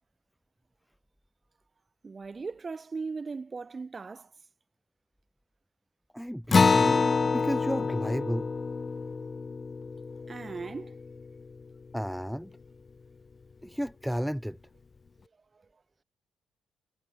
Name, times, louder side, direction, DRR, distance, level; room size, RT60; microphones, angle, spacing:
voice 1, 2.0-4.3 10.3-11.0, right 4 dB, 30° right, 5.5 m, -38 dB
voice 2, 6.1-8.5 11.9-12.5 13.6-14.6, equal, ahead, 3.1 m, -33 dB
Acoustic guitar, 6.5-11.4, left 4 dB, 35° left, 0.7 m, -27 dB
cardioid pair, 90°, 0 cm